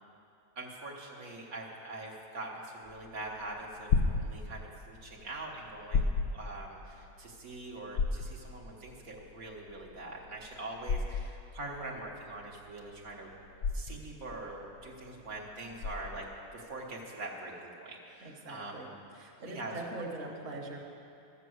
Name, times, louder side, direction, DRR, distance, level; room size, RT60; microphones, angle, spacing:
voice 1, 0.6-13.3 13.7-16.3 16.5-18.9 19.4-20.4, right 2 dB, 80° right, -2 dB, 1.8 m, -43 dB
sound 1, 2.9-16.4, left 4 dB, 70° left, 1.1 m, -34 dB
voice 2, 11.6-11.9 18.2-20.8, right 2 dB, 60° right, -1 dB, 1.6 m, -43 dB
13.0 x 6.8 x 7.8 m, 2.6 s
omnidirectional pair, 1.5 m